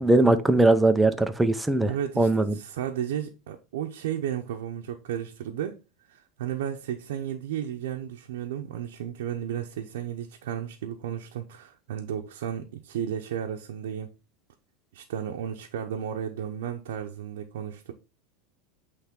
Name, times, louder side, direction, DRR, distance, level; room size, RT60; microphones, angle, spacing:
voice 1, 0.0-2.5, right 2 dB, 5° right, 0.6 m, -21 dB
voice 2, 1.9-5.8 6.1-14.1 14.9-17.9, right 9 dB, 85° right, 0.7 m, -33 dB
8.4 x 3.3 x 3.7 m
supercardioid pair, 135°, 0 cm